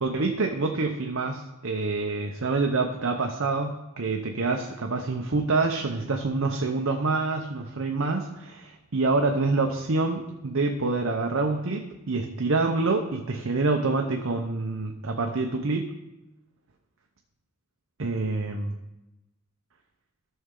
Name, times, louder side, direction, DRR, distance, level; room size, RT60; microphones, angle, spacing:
voice 1, 0.0-15.9 18.0-18.7, right 3 dB, 75° right, 3 dB, 0.8 m, -26 dB
14.0 x 5.5 x 3.8 m, 0.98 s
head